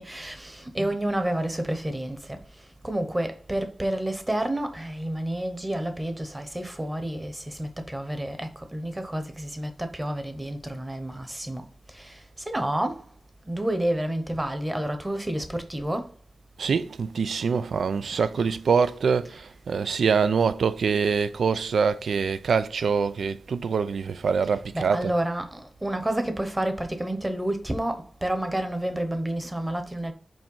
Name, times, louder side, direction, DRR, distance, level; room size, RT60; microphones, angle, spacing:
voice 1, 0.0-2.4 2.8-11.7 11.9-12.2 12.5-13.0 13.5-16.1 24.7-30.1, right 1 dB, 15° right, 1.0 m, -29 dB
voice 2, 16.6-25.1, right 5 dB, 90° right, 0.4 m, -24 dB
5.2 x 4.5 x 5.5 m
wide cardioid pair, 120°, 0 cm